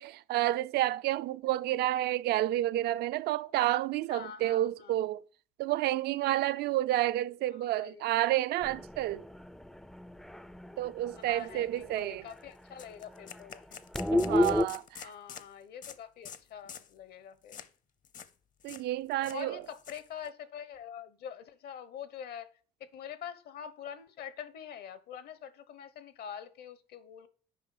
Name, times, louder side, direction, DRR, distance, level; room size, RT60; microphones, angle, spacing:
voice 1, 0.0-5.2 5.6-9.3 10.8-12.2 14.1-15.1 18.6-19.6, right 14 dB, 75° right, 0.5 m, -30 dB
voice 2, 4.1-5.0 7.7-8.1 11.2-13.6 14.9-17.6 19.2-22.5 22.8-27.3, left 8 dB, 70° left, 1.1 m, -45 dB
sound 1, 8.6-12.0 12.3-12.4 12.7-12.8 13.1-14.7, left 1 dB, ahead, 0.4 m, -32 dB
sound 2, 11.4-11.5 11.8-12.0 12.3-12.4 12.8-15.5 15.8-16.0 16.2-16.4 16.7-16.9 17.5-17.7 18.0-18.3 18.6-18.8 19.1-20.3, left 8 dB, 50° left, 0.8 m, -47 dB
8.9 x 5.3 x 5.7 m
cardioid pair, 110°, 17 cm